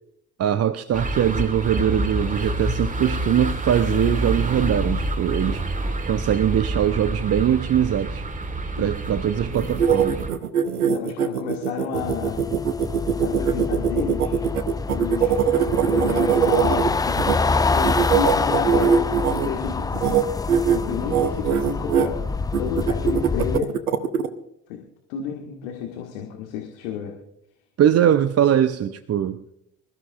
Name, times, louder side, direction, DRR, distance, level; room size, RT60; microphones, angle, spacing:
voice 1, 0.4-5.7 6.1-8.2 8.8-10.2 27.8-29.7, right 10 dB, 35° right, 13 dB, 0.7 m, -22 dB
sound 1, 0.9-10.3, right 1 dB, 20° right, 1.6 m, -27 dB
sound 2, 9.5-17.4 17.8-19.5 19.9-20.2 20.5-20.8 21.1-22.1 22.5-24.3, right 7 dB, 85° right, 0.9 m, -21 dB
voice 2, 10.8-12.4 13.2-14.4 14.9-15.4 15.8-17.4 17.7-20.3 20.7-22.2 22.6-23.7 24.7-24.8 25.1-27.1, left 7 dB, 70° left, 2 dB, 1.8 m, -31 dB
sound 3, 11.9-23.6, left 4 dB, 10° left, 0.4 m, -26 dB
25.5 x 14.0 x 2.5 m, 0.78 s
figure-of-eight pair, 50°, 44 cm